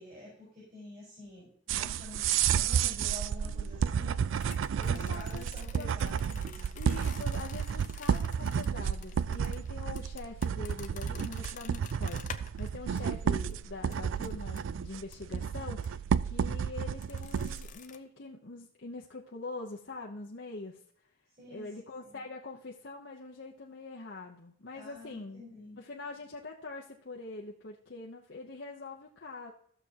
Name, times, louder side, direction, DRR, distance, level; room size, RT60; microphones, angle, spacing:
voice 1, 0.0-4.2 4.8-6.7 12.9-13.1 21.4-21.7 22.0-22.2 24.7-25.8, left 1 dB, 40° right, -7 dB, 4.4 m, -49 dB
sound 1, 1.7-17.7, right 7 dB, 80° right, 0.3 m, -31 dB
voice 2, 3.4-3.9 4.8-5.5 5.7-6.2 6.7-20.8 21.5-25.4 25.8-29.5, left 3 dB, 65° left, -1 dB, 0.9 m, -44 dB
sound 2, 4.3-12.7 13.0-13.1 13.5-13.6 13.9-14.6 15.1-15.2 15.8-15.9 17.0-18.0, left 8 dB, 40° left, 0.6 m, -49 dB
15.0 x 6.8 x 2.9 m, 0.63 s
head